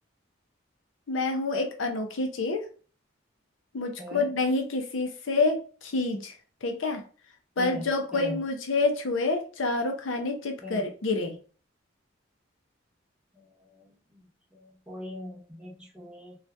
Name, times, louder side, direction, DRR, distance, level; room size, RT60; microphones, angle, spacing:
voice 1, 1.1-2.6 3.7-6.3 6.6-7.0 7.6-11.4, left 3 dB, 80° left, 4 dB, 0.6 m, -28 dB
voice 2, 4.0-4.3 7.6-8.4 10.6-10.8 13.3-14.2 14.5-16.4, equal, 5° right, -4 dB, 0.8 m, -41 dB
2.7 x 2.4 x 3.3 m, 0.39 s
head